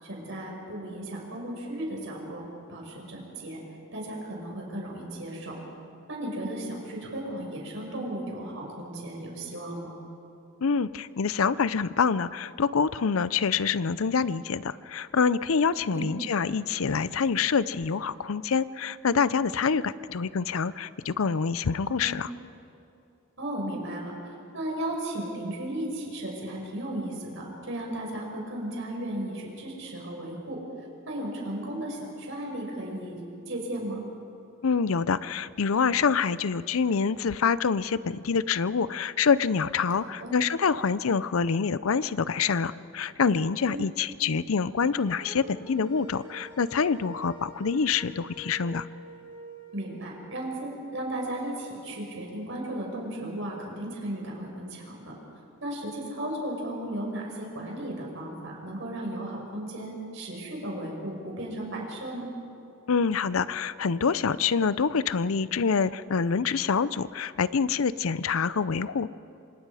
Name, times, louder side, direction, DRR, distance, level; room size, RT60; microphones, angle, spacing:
voice 1, 0.0-3.6 3.9-5.6 6.1-10.0 15.9-16.1 22.0-22.2 23.4-24.2 24.5-30.6 31.1-33.2 33.5-34.0 40.0-40.3 43.6-43.9 49.7-55.1 55.6-62.3, right 1 dB, 60° right, -1 dB, 5.7 m, -35 dB
voice 2, 10.6-22.3 34.6-48.9 62.9-69.1, left 5 dB, 80° left, 16 dB, 0.6 m, -26 dB
sound 1, 44.9-49.8, right 1 dB, 25° left, 5.7 m, -46 dB
26.5 x 26.5 x 4.9 m, 2.7 s
head